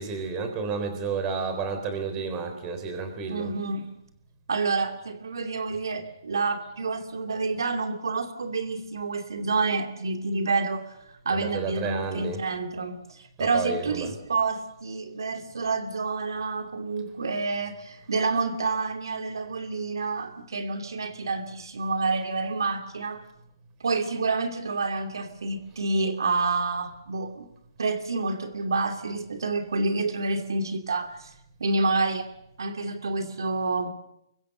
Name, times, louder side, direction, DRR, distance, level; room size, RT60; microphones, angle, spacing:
voice 1, 0.0-3.5 11.3-12.4 13.4-14.1, right 5 dB, 20° right, 8 dB, 3.8 m, -31 dB
voice 2, 3.3-3.8 4.5-11.0 11.2-23.2 23.8-27.5 27.8-31.3 31.6-32.3 32.6-33.9, right 3 dB, 80° right, 6 dB, 2.7 m, -28 dB
25.5 x 23.5 x 6.7 m, 0.81 s
hypercardioid pair, 165°, 2 cm